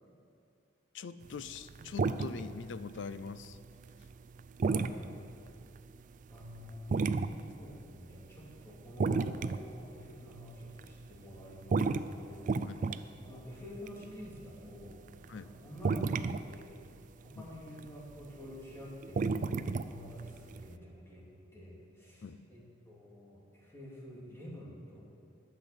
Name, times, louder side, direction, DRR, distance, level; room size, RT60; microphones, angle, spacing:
voice 1, 0.9-3.6 12.6-12.8 15.3-15.5 17.4-17.5 22.2-22.5, left 5 dB, 70° left, 14 dB, 0.5 m, -43 dB
sound 1, 1.2-2.7 2.9-7.5 7.8-8.6 8.9-10.4 10.8-11.4 11.6-15.4 15.8-17.0 17.3-18.2 18.5-20.7, right 4 dB, 45° right, 0.3 m, -32 dB
voice 2, 4.6-4.9 6.3-7.1 7.6-16.8 17.2-25.0, equal, 15° left, -5 dB, 2.5 m, -49 dB
11.5 x 7.9 x 6.5 m, 2.4 s
head